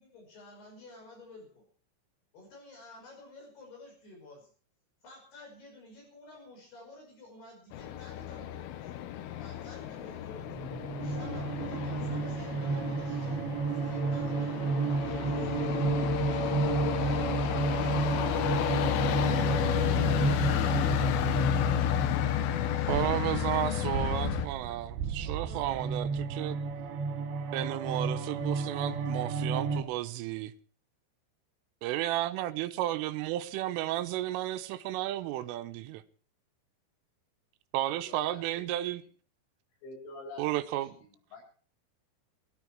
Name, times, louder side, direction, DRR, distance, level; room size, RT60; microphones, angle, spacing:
voice 1, 0.0-1.6 2.3-4.5 5.0-8.9 9.4-10.6 11.0-13.4 13.8-15.9 16.3-18.1 22.8-24.3 25.2-25.8, left 2 dB, 55° left, 7.6 m, -51 dB
sound 1, 7.7-24.5, left 12 dB, 90° left, 3.7 m, -31 dB
sound 2, 10.4-29.8, right 4 dB, 65° right, 3.9 m, -32 dB
voice 2, 22.9-26.6 27.5-30.5 31.8-36.0 37.7-39.0 40.4-41.0, right 14 dB, 85° right, 3.5 m, -33 dB
voice 3, 37.9-38.6 39.8-40.6 41.0-41.4, left 2 dB, 70° left, 9.5 m, -47 dB
19.5 x 13.5 x 4.6 m
omnidirectional pair, 5.7 m